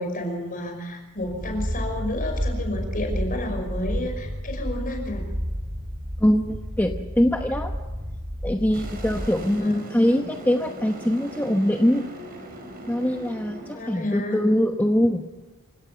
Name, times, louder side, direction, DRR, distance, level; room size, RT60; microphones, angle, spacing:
voice 1, 0.0-5.2 9.2-9.8 13.7-14.4, left 1 dB, 40° left, 3 dB, 5.7 m, -31 dB
sound 1, 1.2-9.6, equal, 25° right, 2.4 m, -31 dB
voice 2, 6.2-7.7 8.4-12.0 12.9-15.2, equal, 10° left, 3 dB, 1.0 m, -23 dB
sound 2, 8.7-13.7, right 1 dB, 45° right, 4.2 m, -40 dB
28.0 x 17.5 x 5.9 m, 1.2 s
head